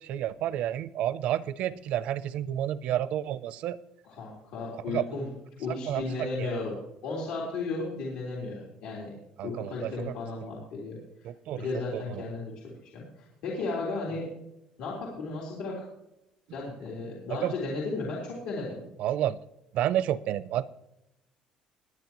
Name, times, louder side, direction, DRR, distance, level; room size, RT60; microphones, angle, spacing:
voice 1, 0.0-3.8 4.9-5.0 5.8-6.6 9.4-9.9 11.2-11.7 11.9-12.2 17.4-17.5 19.0-19.4 19.7-20.7, right 11 dB, 55° right, 16 dB, 0.5 m, -30 dB
voice 2, 4.1-5.3 5.6-6.8 7.0-9.1 9.4-11.0 11.5-12.5 12.9-14.3 14.8-15.9 16.5-18.8, left 3 dB, 90° left, -4 dB, 3.4 m, -34 dB
20.0 x 9.6 x 3.0 m, 0.86 s
cardioid pair, 175°, 3 cm